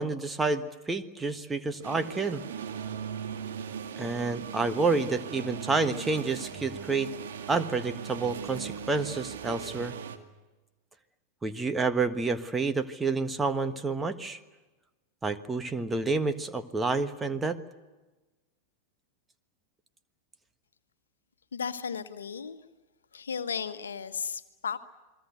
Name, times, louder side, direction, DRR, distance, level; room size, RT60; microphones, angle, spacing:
voice 1, 0.0-2.4 4.0-7.1 7.5-9.9 11.4-14.4 15.2-17.6, right 3 dB, 10° right, 9 dB, 1.5 m, -29 dB
sound 1, 1.8-10.2, right 7 dB, 60° right, 2.2 m, -39 dB
voice 2, 21.5-22.6 23.1-24.8, left 6 dB, 70° left, 10 dB, 1.4 m, -34 dB
29.0 x 21.5 x 8.1 m, 1.1 s
figure-of-eight pair, 90°, 0 cm